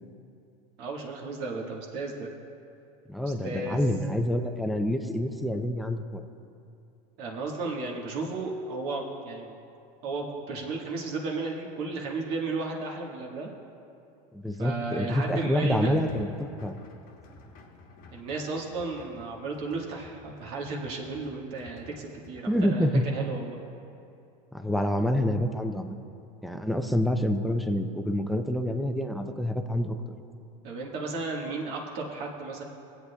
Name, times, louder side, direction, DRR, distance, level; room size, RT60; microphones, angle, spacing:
voice 1, 0.8-2.3 3.2-3.9 7.2-9.6 10.0-13.5 14.6-16.0 18.1-23.6 30.6-32.6, right 3 dB, 55° right, -1 dB, 1.5 m, -34 dB
voice 2, 3.1-6.2 14.3-16.7 22.5-23.1 24.5-26.0 26.4-30.1, equal, ahead, 5 dB, 0.5 m, -27 dB
sound 1, 15.7-22.7, left 3 dB, 45° left, 1.1 m, -52 dB
21.0 x 8.2 x 2.3 m, 2.6 s
supercardioid pair, 125°, 20 cm